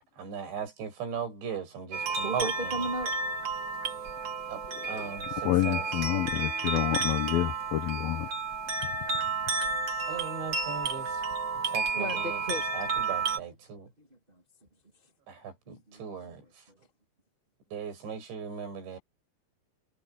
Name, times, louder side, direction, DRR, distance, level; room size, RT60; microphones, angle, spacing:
voice 1, 0.2-2.8 4.5-5.9 6.1-6.3 10.1-11.2 11.7-13.9 15.3-16.4 17.7-19.0, right 6 dB, 80° right, 8.2 m, -38 dB
sound 1, 1.9-13.4, right 4 dB, 60° right, 1.2 m, -32 dB
voice 2, 2.2-3.1 11.9-12.6 14.0-14.4 15.7-16.3 18.6-18.7, equal, 15° right, 2.0 m, -36 dB
voice 3, 4.7-8.3, left 15 dB, 80° left, 2.2 m, -29 dB
omnidirectional pair, 5.1 m